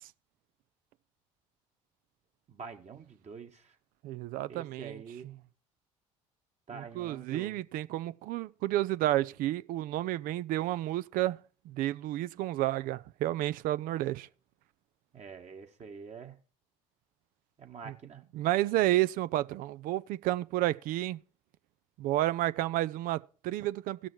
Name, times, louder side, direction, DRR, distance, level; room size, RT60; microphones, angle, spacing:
voice 1, 2.5-3.8 4.5-5.3 6.7-7.6 15.1-16.4 17.6-18.2, right 6 dB, 45° right, 1.9 m, -46 dB
voice 2, 4.0-5.0 6.7-11.4 11.7-14.3 17.9-18.0 18.3-21.2 22.0-24.1, right 15 dB, 60° right, 0.5 m, -31 dB
16.0 x 6.3 x 4.7 m
hypercardioid pair, 55°, 16 cm